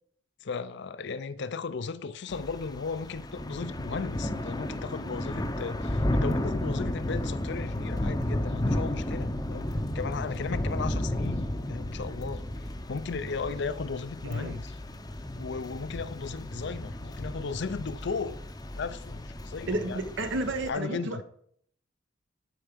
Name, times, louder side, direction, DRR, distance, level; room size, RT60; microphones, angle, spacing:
voice 1, 0.4-12.4 12.9-14.8 15.4-18.4 18.7-20.0 20.7-21.2, left 4 dB, 60° left, 0.5 m, -36 dB
Thunder / Rain, 2.3-20.7, left 1 dB, 20° left, 0.7 m, -33 dB
voice 2, 14.3-14.6 19.7-21.2, right 2 dB, 65° right, 0.9 m, -32 dB
12.0 x 4.6 x 5.2 m
head